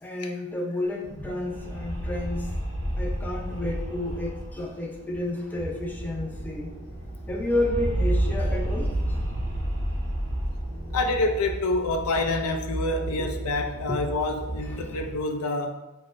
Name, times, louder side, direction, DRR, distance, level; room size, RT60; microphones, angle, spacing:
voice 1, 0.0-2.5 3.0-6.7 7.3-8.9 13.9-14.0, left 1 dB, 10° left, 0.4 m, -30 dB
sound 1, 0.9-6.2 6.5-6.6 6.8-11.2, right 1 dB, 70° right, 0.8 m, -30 dB
sound 2, 5.5-15.1, right 1 dB, 35° right, 0.8 m, -36 dB
voice 2, 10.9-15.7, left 2 dB, 70° left, 0.4 m, -27 dB
5.7 x 2.0 x 2.5 m
head